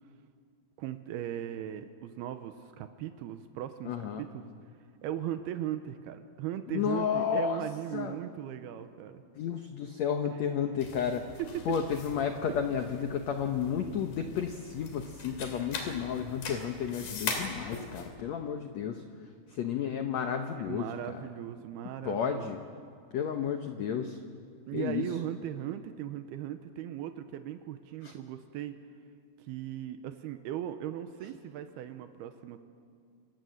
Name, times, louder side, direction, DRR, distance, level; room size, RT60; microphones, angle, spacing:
voice 1, 0.8-4.4 5.0-9.2 10.3-10.4 11.4-11.6 20.6-22.5 24.7-28.7 29.5-32.6, right 11 dB, 85° right, 9 dB, 2.8 m, -38 dB
voice 2, 3.8-4.3 6.7-7.6 7.9-8.2 9.3-11.3 11.6-19.0 19.5-21.2 22.0-22.6 23.1-24.2 24.7-25.1 28.0-28.1, left 8 dB, 85° left, 6 dB, 1.5 m, -32 dB
sound 1, 10.8-18.1, left 4 dB, 65° left, 4.3 m, -41 dB
27.5 x 20.0 x 7.9 m, 2.3 s
omnidirectional pair, 4.6 m